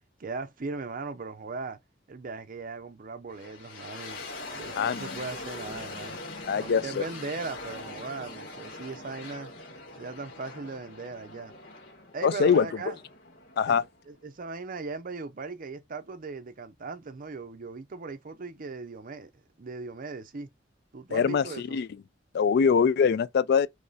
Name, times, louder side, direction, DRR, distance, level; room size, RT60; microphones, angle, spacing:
voice 1, 0.2-1.8 2.1-6.2 6.6-9.5 10.0-11.5 12.1-13.0 13.7-13.8 14.1-19.3 19.6-20.5 20.9-21.8, right 4 dB, 45° right, 0.6 m, -38 dB
sound 1, 3.3-14.2, left 2 dB, 80° left, 1.6 m, -42 dB
voice 2, 4.8-5.2 6.5-7.0 12.2-12.9 13.6-13.8 21.1-21.9 22.3-23.7, left 6 dB, 60° left, 0.3 m, -23 dB
3.5 x 3.1 x 3.9 m
head